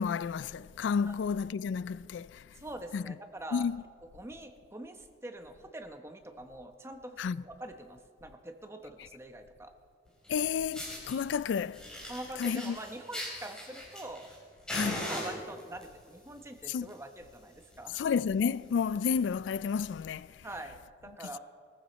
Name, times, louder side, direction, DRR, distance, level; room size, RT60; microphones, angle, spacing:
voice 1, 0.0-2.4 2.9-3.1 3.5-3.8 7.2-7.4 10.3-11.8 12.4-12.8 14.7-15.1 16.7-16.9 18.0-20.3, left 6 dB, 90° left, 0.3 m, -31 dB
voice 2, 2.5-3.7 4.1-9.7 12.1-14.3 15.1-18.0 20.4-21.4, right 1 dB, 15° right, 1.0 m, -44 dB
Fire, 10.2-10.3 10.7-11.2 11.7-14.4 14.7-15.8 16.6-16.9 17.2-17.3 17.7-17.8 18.1-18.3 18.8-18.9 19.9-20.0, equal, 5° left, 4.0 m, -39 dB
20.5 x 15.0 x 4.2 m
head